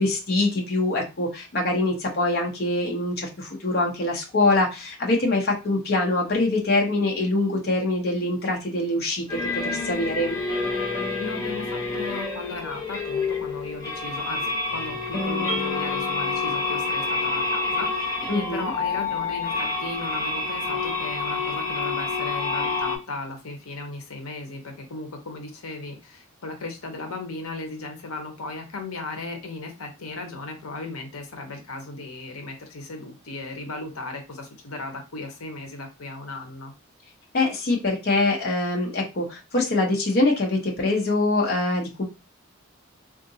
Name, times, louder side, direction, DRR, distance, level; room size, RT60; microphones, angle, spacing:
voice 1, 0.0-10.4 18.3-18.7 37.3-42.0, left 2 dB, 45° left, -1 dB, 0.7 m, -24 dB
sound 1, 9.3-23.0, left 3 dB, 15° left, 0.9 m, -28 dB
voice 2, 11.2-36.7, left 3 dB, 80° left, 4 dB, 0.8 m, -36 dB
3.7 x 2.4 x 2.7 m, 0.28 s
head